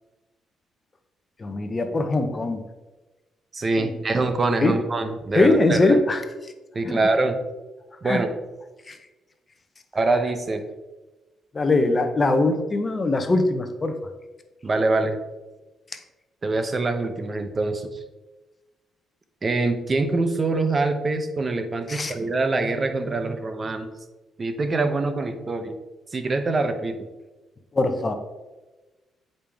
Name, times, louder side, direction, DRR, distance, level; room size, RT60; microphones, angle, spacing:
voice 1, 1.4-2.6 3.8-3.9 4.6-4.8 5.3-6.2 6.8-7.0 8.0-8.2 8.9-9.0 11.5-14.0 21.9-22.1 27.7-28.1, left 2 dB, 30° left, 7 dB, 0.9 m, -21 dB
voice 2, 3.5-6.0 6.7-7.4 8.0-8.3 9.9-10.6 14.6-15.2 16.4-17.9 19.4-23.9 24.4-25.8 26.1-27.0, right 3 dB, 35° right, 8 dB, 0.8 m, -24 dB
8.6 x 5.3 x 3.5 m, 1.2 s
cardioid pair, 90°, 0 cm